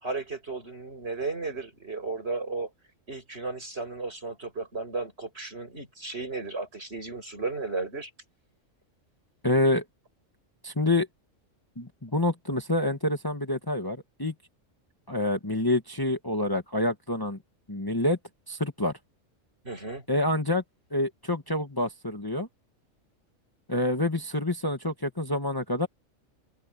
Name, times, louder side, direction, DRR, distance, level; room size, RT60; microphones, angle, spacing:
voice 1, 0.0-2.7 3.1-8.1 19.6-20.0, right 3 dB, 50° right, 7.2 m, -34 dB
voice 2, 9.4-9.8 10.6-11.1 11.8-14.3 15.1-17.4 17.7-18.2 18.5-18.9 20.1-20.6 20.9-22.5 23.7-25.9, left 1 dB, 15° left, 1.7 m, -27 dB
open air
omnidirectional pair, 1.3 m